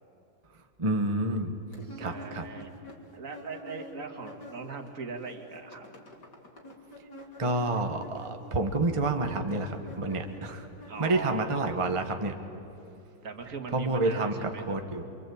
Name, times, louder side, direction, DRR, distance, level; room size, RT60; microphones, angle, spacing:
voice 1, 0.8-1.5 2.0-2.4 7.4-10.7 11.0-12.3 13.7-15.0, right 2 dB, 20° right, 5 dB, 1.2 m, -29 dB
sound 1, 1.7-4.9 5.1-11.8, left 1 dB, 60° left, 3.6 m, -48 dB
voice 2, 1.9-2.7 3.1-5.9 10.9-11.5 13.2-14.7, right 4 dB, 45° right, 4 dB, 2.5 m, -40 dB
27.5 x 24.5 x 8.6 m, 2.9 s
omnidirectional pair, 2.0 m